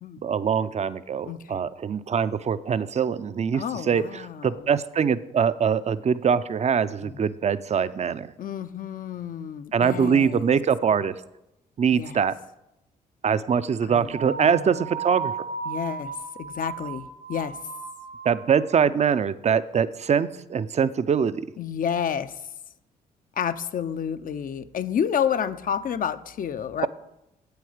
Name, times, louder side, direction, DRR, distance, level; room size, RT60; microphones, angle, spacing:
voice 1, 0.2-8.3 9.7-11.1 11.8-12.3 13.2-15.3 18.2-21.4, right 7 dB, 40° right, 15 dB, 0.5 m, -23 dB
voice 2, 1.2-1.6 3.5-4.6 7.0-7.1 8.4-10.5 11.9-12.2 13.8-14.6 15.7-16.1 16.4-17.6 21.6-22.3 23.4-26.9, left 8 dB, 55° left, 12 dB, 0.6 m, -30 dB
sound 1, 14.1-18.7, right 6 dB, 85° right, 3.3 m, -35 dB
8.4 x 8.0 x 5.0 m, 0.87 s
supercardioid pair, 55°, 17 cm